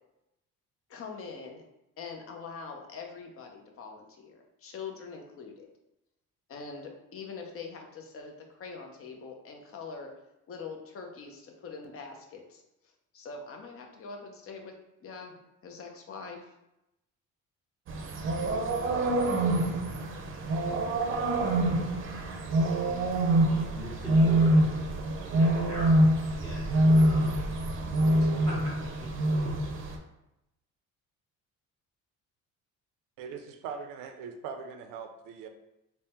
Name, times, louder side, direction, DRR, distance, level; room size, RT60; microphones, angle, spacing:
voice 1, 0.9-1.6 2.0-5.7 6.5-10.1 10.5-12.6 13.1-14.7 15.0-16.4, left 5 dB, 45° left, 2 dB, 0.7 m, -43 dB
sound 1, 17.9-30.0, right 1 dB, 40° right, 0.6 m, -25 dB
voice 2, 23.4-24.7 25.2-27.4 27.6-29.1, equal, 10° left, -6 dB, 0.9 m, -43 dB
voice 3, 33.2-35.5, right 6 dB, 90° right, 6 dB, 0.5 m, -41 dB
3.4 x 2.1 x 4.3 m, 0.88 s
cardioid pair, 100°, 32 cm